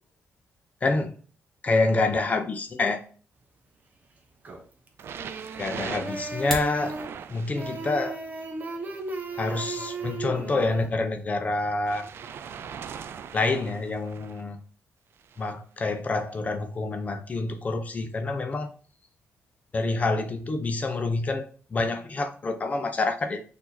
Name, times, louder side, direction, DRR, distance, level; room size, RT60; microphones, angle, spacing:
voice 1, 0.8-1.1 1.6-3.0 5.6-7.0 7.3-8.2 9.4-12.1 13.3-14.6 15.4-18.7 19.7-23.4, left 3 dB, 30° left, 0.7 m, -27 dB
sound 1, 4.4-4.9 5.1-7.2 7.5-10.9, right 3 dB, 35° right, 0.9 m, -36 dB
sound 2, 5.0-8.1 9.0-10.8 11.9-14.4 15.2-15.5 16.3-16.4, right 7 dB, 55° right, 0.3 m, -42 dB
sound 3, 6.2-6.8, equal, 5° left, 1.5 m, -33 dB
4.6 x 2.8 x 4.1 m
cardioid pair, 120°, 5 cm